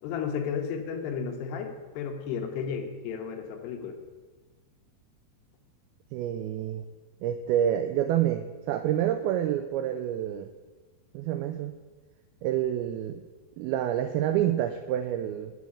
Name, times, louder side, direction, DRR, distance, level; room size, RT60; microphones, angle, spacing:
voice 1, 0.0-4.0, left 6 dB, 75° left, 5 dB, 3.0 m, -33 dB
voice 2, 6.1-6.8 7.2-10.5 11.1-11.8 12.4-13.2 13.6-15.5, right 11 dB, 85° right, 9 dB, 2.2 m, -28 dB
8.5 x 7.7 x 8.5 m, 1.3 s
omnidirectional pair, 4.9 m